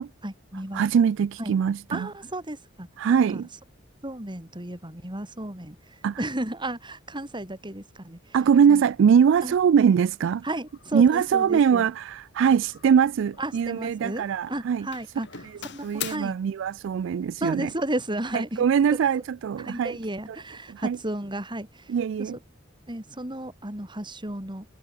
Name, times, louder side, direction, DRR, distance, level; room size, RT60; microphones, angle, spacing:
voice 1, 0.2-0.8 1.4-1.6 1.9-3.4 4.0-8.4 8.7-8.8 9.4-9.6 10.4-11.9 13.4-16.4 17.4-18.6 19.6-22.3 22.9-24.7, right 1 dB, 25° right, 4.7 m, -34 dB
voice 2, 0.7-2.1 3.0-3.5 6.0-6.2 8.3-10.4 10.9-14.9 15.8-17.7 18.6-19.9 20.7-21.0 21.9-22.4, right 7 dB, 70° right, 0.3 m, -22 dB
Doorbell, 9.9-10.1 10.7-11.0 11.3-11.7 12.7-13.8 14.0-14.5 14.9-16.2, left 9 dB, 60° left, 6.8 m, -41 dB
head